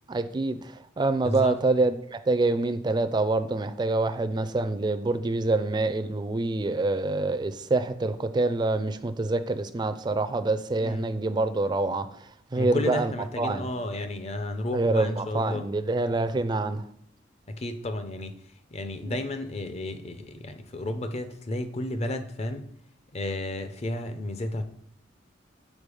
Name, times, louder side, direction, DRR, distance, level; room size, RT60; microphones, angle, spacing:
voice 1, 0.1-13.7 14.7-16.8 19.1-19.2, right 2 dB, 25° right, 0.3 m, -26 dB
voice 2, 1.2-1.6 10.8-11.1 12.6-15.7 17.5-18.4 18.7-22.7 23.1-24.6, left 1 dB, 35° left, 0.5 m, -32 dB
5.2 x 4.6 x 4.8 m
head